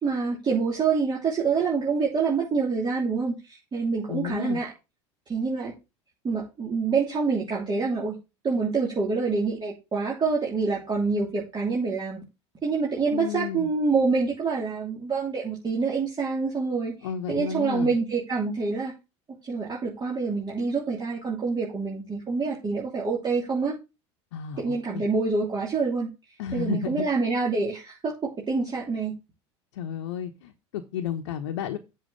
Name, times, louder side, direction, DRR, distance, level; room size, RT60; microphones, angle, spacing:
voice 1, 0.0-4.7 5.3-5.7 6.2-8.2 8.4-12.2 12.6-16.9 17.3-18.9 19.5-23.8 24.6-26.1 26.5-29.1, right 4 dB, 30° right, -4 dB, 3.2 m, -26 dB
voice 2, 4.1-4.6 13.1-13.7 17.0-17.9 24.3-25.0 26.4-27.0 29.7-31.8, left 8 dB, 80° left, 4 dB, 1.1 m, -32 dB
7.6 x 4.6 x 7.1 m, 0.27 s
hypercardioid pair, 80°, 15 cm